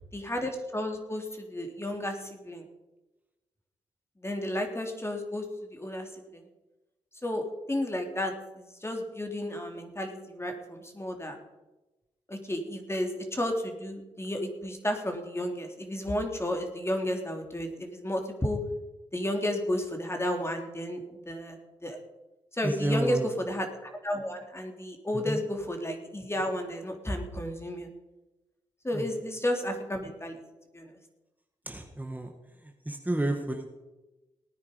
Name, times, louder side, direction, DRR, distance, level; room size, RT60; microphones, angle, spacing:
voice 1, 0.1-2.7 4.2-5.4 5.7-6.4 7.2-11.4 12.3-18.6 19.1-22.0 22.5-23.7 24.0-27.9 28.8-30.4 30.7-30.9, left 1 dB, 20° left, 4 dB, 3.3 m, -32 dB
voice 2, 22.6-23.3 25.1-25.4 28.9-29.1 31.7-32.3 32.6-33.6, right 1 dB, 15° right, 3 dB, 1.9 m, -31 dB
18.5 x 9.6 x 5.2 m, 1.1 s
supercardioid pair, 45°, 13 cm